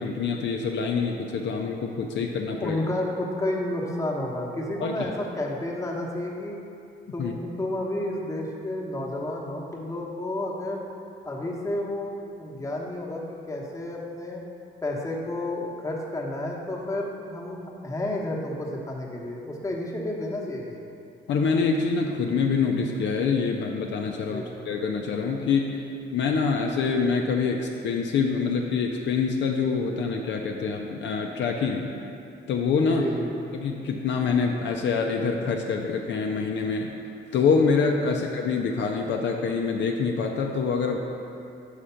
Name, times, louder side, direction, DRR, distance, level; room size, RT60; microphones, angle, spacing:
voice 1, 0.0-2.8 4.8-5.1 7.2-7.3 21.3-25.9 26.1-31.9 32.5-33.1 33.5-36.9 37.3-41.0, left 5 dB, 65° left, 1 dB, 0.5 m, -25 dB
voice 2, 2.6-6.6 7.1-10.8 11.2-14.4 14.8-20.9 24.3-24.5 32.9-33.3 38.0-38.2, left 1 dB, 15° left, -2 dB, 1.0 m, -31 dB
5.0 x 4.9 x 5.6 m, 2.6 s
cardioid pair, 90°, 20 cm